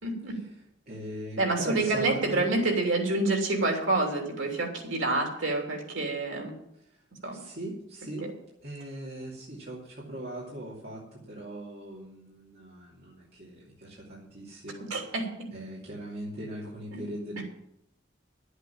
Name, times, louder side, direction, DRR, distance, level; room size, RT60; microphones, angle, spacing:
voice 1, 0.0-0.4 1.4-6.5 7.2-7.4 8.2-8.3 14.9-15.3 16.9-17.0 17.4-17.5, right 2 dB, 90° right, 2 dB, 3.0 m, -28 dB
voice 2, 0.9-2.4 6.8-6.9 7.3-8.3 8.6-14.9 15.5-17.4, right 1 dB, 50° right, -6 dB, 2.7 m, -40 dB
11.5 x 8.2 x 7.2 m, 0.76 s
head